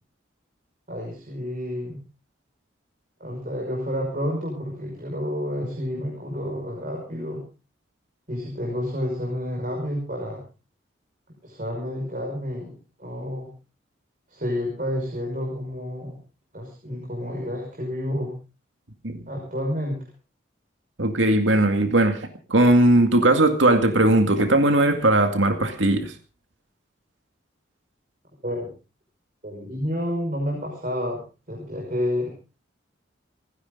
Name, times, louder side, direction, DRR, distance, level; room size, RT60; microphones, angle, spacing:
voice 1, 0.9-2.0 3.2-7.5 8.3-10.4 11.4-13.5 14.3-16.2 16.5-18.4 19.3-20.1 28.4-28.7 29.4-32.3, equal, 45° right, 1 dB, 5.6 m, -30 dB
voice 2, 21.0-22.2 22.5-26.1, right 1 dB, 80° right, 6 dB, 2.2 m, -18 dB
29.0 x 10.5 x 3.9 m, 0.34 s
head